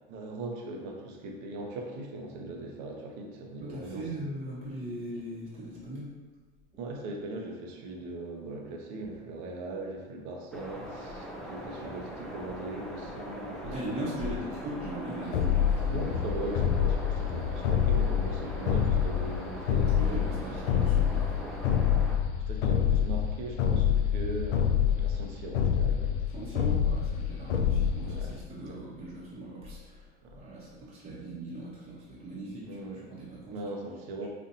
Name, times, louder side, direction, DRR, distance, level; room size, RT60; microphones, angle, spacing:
voice 1, 0.1-4.0 6.8-14.6 15.9-20.4 22.5-26.2 28.0-28.3 28.7-28.8 30.2-30.4 32.6-33.0 33.5-34.3, right 2 dB, 55° right, 1 dB, 0.8 m, -39 dB
voice 2, 3.6-6.1 13.7-16.1 19.9-21.4 26.3-32.8 33.1-33.6, right 1 dB, 20° right, -7 dB, 0.9 m, -39 dB
sound 1, 10.5-22.2, equal, ahead, 0.3 m, -41 dB
sound 2, 15.3-28.4, left 8 dB, 80° left, 0.5 m, -27 dB
4.2 x 2.4 x 2.7 m, 1.3 s
hypercardioid pair, 95°, 35 cm